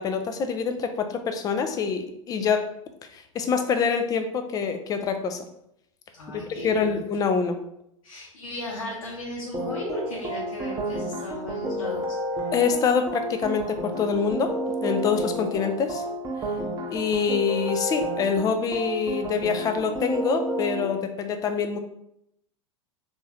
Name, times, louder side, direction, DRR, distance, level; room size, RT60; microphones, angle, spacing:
voice 1, 0.0-2.7 3.1-5.5 6.6-7.6 12.5-14.5 14.8-16.0 16.9-21.8, left 6 dB, 20° left, 7 dB, 0.4 m, -25 dB
voice 2, 6.1-7.0 8.0-12.0, left 1 dB, 75° left, -5 dB, 0.9 m, -35 dB
sound 1, 9.5-20.8, right 1 dB, 20° right, 0.7 m, -31 dB
3.5 x 2.6 x 3.2 m, 0.76 s
figure-of-eight pair, 90°, 18 cm